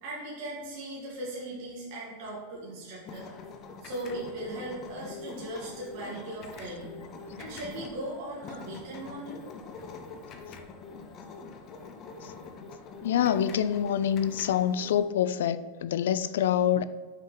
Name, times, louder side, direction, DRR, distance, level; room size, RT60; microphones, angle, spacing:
voice 1, 0.0-3.3 3.8-7.0 7.4-9.4, right 1 dB, 50° right, 1.7 m, -38 dB
sound 1, 3.0-15.0, left 4 dB, 25° left, 0.6 m, -44 dB
voice 2, 13.0-16.8, left 9 dB, 85° left, 0.3 m, -26 dB
5.6 x 4.5 x 3.9 m
supercardioid pair, 170°, 0 cm